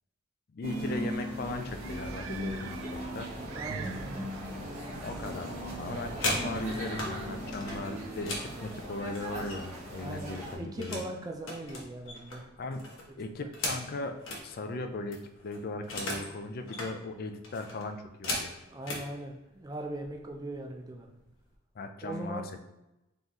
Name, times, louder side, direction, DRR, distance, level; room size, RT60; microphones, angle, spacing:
voice 1, 0.5-3.3 5.0-11.0 12.6-12.9 13.2-18.5 21.8-22.6, left 2 dB, 50° left, 7 dB, 0.4 m, -38 dB
sound 1, 0.6-10.6, equal, 35° right, 1.4 m, -38 dB
sound 2, 1.5-6.8, right 5 dB, 80° right, 0.4 m, -45 dB
voice 2, 3.5-4.3 10.0-12.5 13.4-13.5 18.7-21.2 22.0-22.5, right 1 dB, 20° right, 2 dB, 0.5 m, -40 dB
sound 3, 6.1-7.1 7.5-9.9 10.2-11.1 11.4-14.4 14.8-14.9 15.1-16.3 16.6-16.9 17.4-19.1 19.9-20.1 20.4-20.7 21.0-21.5, left 2 dB, 80° left, 1.1 m, -37 dB
3.9 x 3.7 x 3.0 m, 0.95 s
head